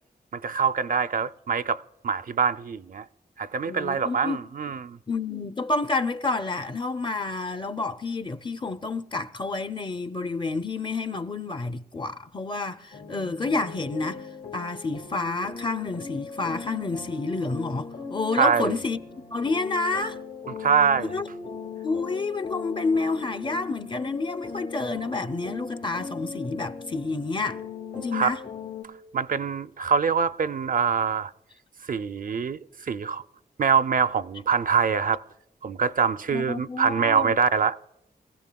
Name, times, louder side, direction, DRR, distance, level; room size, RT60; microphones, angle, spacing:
voice 1, 0.3-3.1 3.4-5.0 18.4-18.8 20.5-21.1 28.1-28.3 29.1-31.3 31.9-33.2 33.6-35.2 35.6-37.8, right 6 dB, 55° right, 0.4 m, -24 dB
voice 2, 3.7-4.4 5.1-20.2 21.1-21.3 21.8-27.6 27.9-28.4 36.3-37.4, left 3 dB, 30° left, 0.5 m, -29 dB
sound 1, 12.9-28.8, left 4 dB, 80° left, 1.9 m, -39 dB
23.5 x 15.5 x 2.3 m
wide cardioid pair, 100°, 17 cm